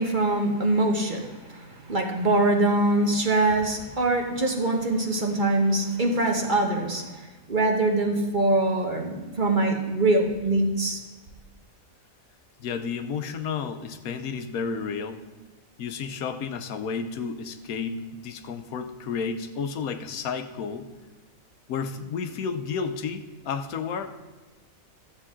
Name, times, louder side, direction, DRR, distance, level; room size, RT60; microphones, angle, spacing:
voice 1, 0.0-11.0, right 2 dB, 35° right, 2 dB, 1.1 m, -24 dB
voice 2, 12.6-15.2 15.8-20.9 21.7-24.1, left 5 dB, 85° left, 8 dB, 1.2 m, -32 dB
13.0 x 7.7 x 3.7 m, 1.3 s
omnidirectional pair, 1.5 m